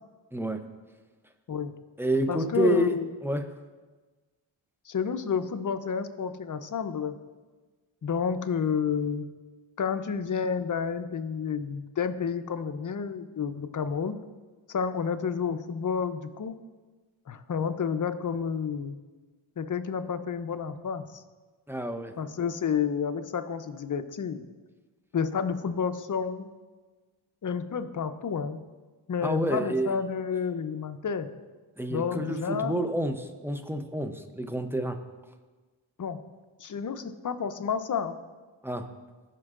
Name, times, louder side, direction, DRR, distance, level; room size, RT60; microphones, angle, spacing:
voice 1, 0.3-0.6 2.0-2.9 3.2-3.4 21.7-22.1 29.2-30.0 31.8-35.0 38.6-38.9, right 1 dB, 5° right, 7 dB, 0.7 m, -29 dB
voice 2, 2.3-3.1 4.9-7.2 8.0-9.3 9.8-14.1 14.7-16.6 17.3-19.0 19.6-21.2 22.2-24.4 25.1-26.5 27.4-28.6 29.1-31.3 31.9-32.8 36.0-36.2 36.6-38.1, left 6 dB, 40° left, 10 dB, 0.7 m, -30 dB
15.5 x 5.3 x 2.5 m, 1.3 s
cardioid pair, 50°, 49 cm